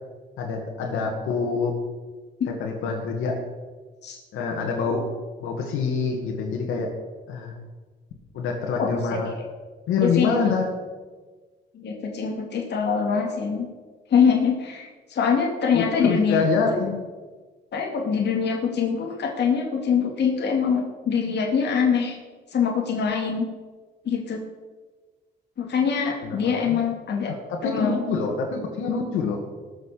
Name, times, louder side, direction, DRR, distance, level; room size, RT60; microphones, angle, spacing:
voice 1, 0.4-1.7 2.5-3.4 4.3-5.0 5.4-6.9 7.3-7.6 8.3-9.3 9.9-10.7 15.7-17.0 26.2-26.8 27.5-29.4, left 5 dB, 90° left, 1 dB, 2.0 m, -26 dB
voice 2, 8.8-9.2 10.0-10.3 11.7-13.7 14.1-16.4 17.7-22.2 22.5-23.5 24.1-24.4 25.6-27.3 27.6-28.0, left 6 dB, 60° left, 0 dB, 2.5 m, -24 dB
19.5 x 6.7 x 6.7 m, 1.4 s
cardioid pair, 90°, 20 cm